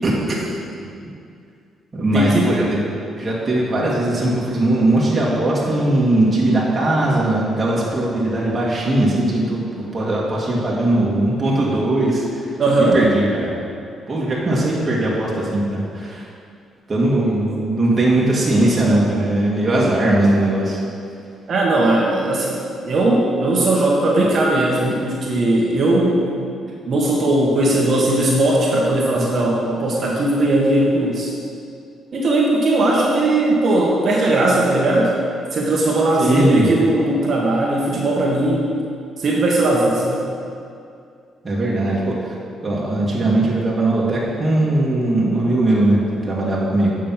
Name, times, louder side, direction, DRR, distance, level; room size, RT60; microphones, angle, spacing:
voice 1, 0.0-0.5 0.8-0.9 1.9-2.8 3.1-13.5 14.1-16.3 16.9-20.8 36.2-36.7 41.4-42.4 42.6-46.9, right 1 dB, 25° right, -6 dB, 2.3 m, -19 dB
voice 2, 2.1-2.5 12.6-13.0 21.5-26.3 26.7-31.3 32.1-35.1 35.5-38.7 39.2-40.2, right 2 dB, 55° right, -3 dB, 1.6 m, -18 dB
8.6 x 6.4 x 5.9 m, 2.4 s
cardioid pair, 90°, 0 cm